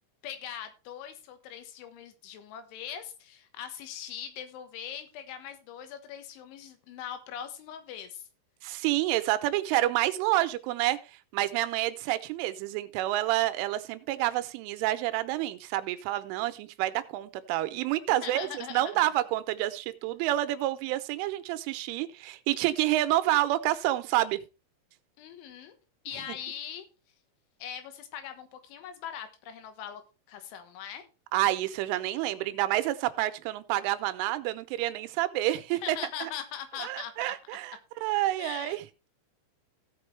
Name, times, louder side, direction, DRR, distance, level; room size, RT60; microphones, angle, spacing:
voice 1, 0.2-8.3 18.2-19.0 25.2-25.8 26.1-26.9 27.6-30.0 30.3-31.1 35.7-37.6 38.4-38.8, left 9 dB, 80° left, 3.6 m, -41 dB
voice 2, 8.6-11.0 11.3-24.4 31.3-36.3 36.8-38.8, right 15 dB, 90° right, 3.3 m, -28 dB
16.5 x 6.1 x 3.2 m
omnidirectional pair, 5.5 m